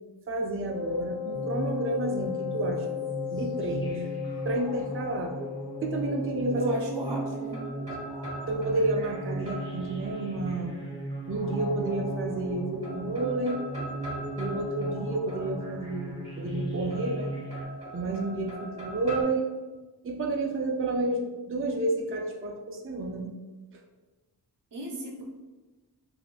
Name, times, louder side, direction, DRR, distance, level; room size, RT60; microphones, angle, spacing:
voice 1, 0.3-3.0 3.3-4.0 4.4-5.4 5.8-6.7 8.5-10.8 11.3-13.6 14.4-17.3 17.9-19.5 20.0-23.3 23.7-23.8, right 2 dB, 30° right, 1 dB, 0.4 m, -30 dB
Wind instrument woodwind instrument, 0.7-7.3, left 11 dB, 60° left, 0.5 m, -36 dB
sound 1, 1.3-17.6, right 2 dB, 10° left, 1.0 m, -36 dB
voice 2, 6.6-7.6 24.7-25.2, right 2 dB, 80° right, -1 dB, 0.7 m, -35 dB
sound 2, 7.1-10.7 11.9-12.5 12.8-16.0 16.9-19.2, right 1 dB, 15° right, 1.5 m, -42 dB
3.6 x 2.6 x 2.4 m, 1.2 s
wide cardioid pair, 45°, 41 cm